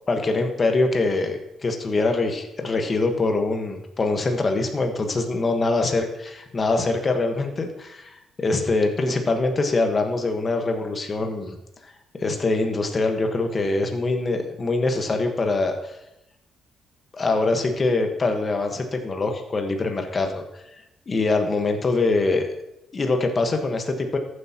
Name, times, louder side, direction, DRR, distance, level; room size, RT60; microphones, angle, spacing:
voice 1, 0.1-11.6 12.2-15.9 17.1-20.4 21.1-22.4 22.9-24.2, left 3 dB, 35° left, 4 dB, 1.3 m, -23 dB
14.5 x 7.9 x 2.9 m, 0.87 s
cardioid pair, 90°, 0 cm